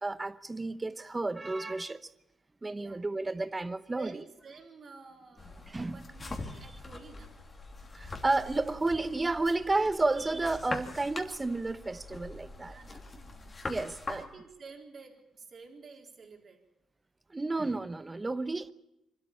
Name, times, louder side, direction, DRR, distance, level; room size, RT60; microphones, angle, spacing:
voice 1, 0.0-2.0 2.6-4.2 5.7-6.0 7.9-12.8 13.7-14.2 17.3-18.7, right 2 dB, 20° right, 0.9 m, -31 dB
voice 2, 2.7-3.2 3.9-7.3 12.6-13.6 14.1-16.6, right 4 dB, 45° right, 4.0 m, -51 dB
sound 1, 5.4-14.3, left 3 dB, 30° left, 2.9 m, -43 dB
25.0 x 13.0 x 8.9 m
cardioid pair, 90°, 0 cm